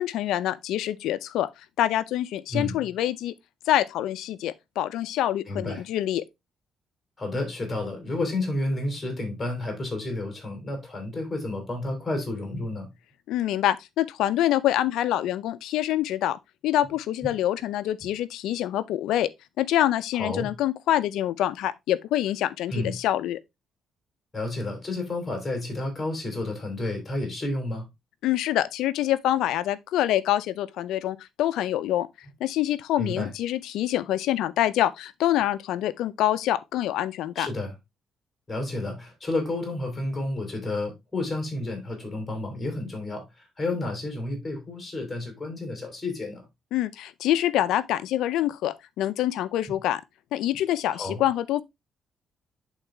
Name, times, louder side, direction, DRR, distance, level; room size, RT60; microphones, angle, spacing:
voice 1, 0.0-1.5 1.8-3.3 3.7-6.2 13.3-19.3 19.6-23.4 28.2-32.1 32.4-37.5 46.7-50.0 50.3-51.6, left 12 dB, 85° left, 0.5 m, -26 dB
voice 2, 2.5-2.8 5.5-5.8 7.2-12.9 20.1-20.5 22.7-22.9 24.3-27.9 33.0-33.3 37.4-37.7 38.5-46.4 50.9-51.2, left 2 dB, 20° left, 3.7 m, -31 dB
9.9 x 4.0 x 3.4 m
cardioid pair, 90°, 0 cm